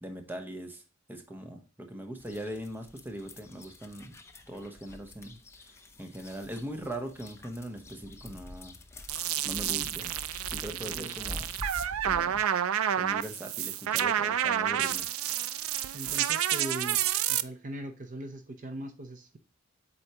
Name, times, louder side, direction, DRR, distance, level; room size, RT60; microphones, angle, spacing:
voice 1, 0.0-0.8 1.1-4.2 4.5-5.4 6.0-8.8 9.4-10.2 10.5-11.5 12.0-12.4 13.0-15.1, right 1 dB, 10° right, 5 dB, 0.9 m, -40 dB
sound 1, 2.2-12.4, left 1 dB, 15° left, 0.5 m, -46 dB
sound 2, 9.1-17.4, right 10 dB, 85° right, 0.4 m, -29 dB
voice 2, 10.8-11.2 15.9-17.0 17.3-19.4, right 1 dB, 40° right, 6 dB, 0.6 m, -40 dB
7.8 x 4.4 x 2.9 m, 0.32 s
head